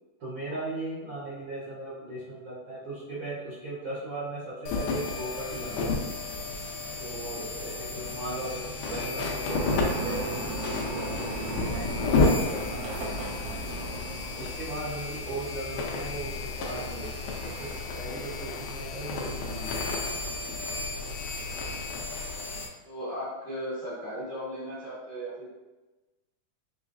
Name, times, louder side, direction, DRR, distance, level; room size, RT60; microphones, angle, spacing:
voice 1, 0.2-6.0 7.0-10.5 10.9-13.5 14.3-19.8, right 2 dB, 60° right, -10 dB, 1.3 m, -38 dB
sound 1, 4.7-22.7, left 3 dB, 85° left, 1.5 m, -32 dB
sound 2, 9.5-14.7, right 2 dB, 75° right, 1.6 m, -36 dB
voice 2, 22.8-25.5, equal, 55° left, -11 dB, 1.2 m, -36 dB
5.5 x 3.1 x 2.6 m, 1.1 s
omnidirectional pair, 3.9 m